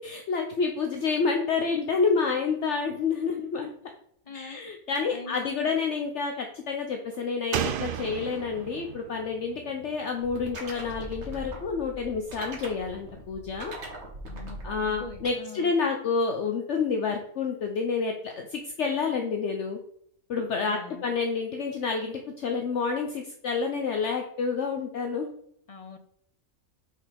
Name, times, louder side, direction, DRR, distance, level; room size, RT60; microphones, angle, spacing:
voice 1, 0.0-3.7 4.3-13.7 14.6-19.8 20.3-25.3, left 5 dB, 60° left, 3 dB, 1.0 m, -29 dB
voice 2, 4.3-4.6 5.1-5.8 14.2-15.7 20.6-21.1 25.7-26.0, left 4 dB, 40° left, 7 dB, 0.5 m, -43 dB
Slam, 7.5-11.0 11.3-11.4, right 9 dB, 70° right, 0.5 m, -35 dB
sound 1, 10.2-15.3, right 1 dB, 55° right, 2.0 m, -41 dB
6.3 x 4.9 x 5.1 m, 0.68 s
omnidirectional pair, 1.4 m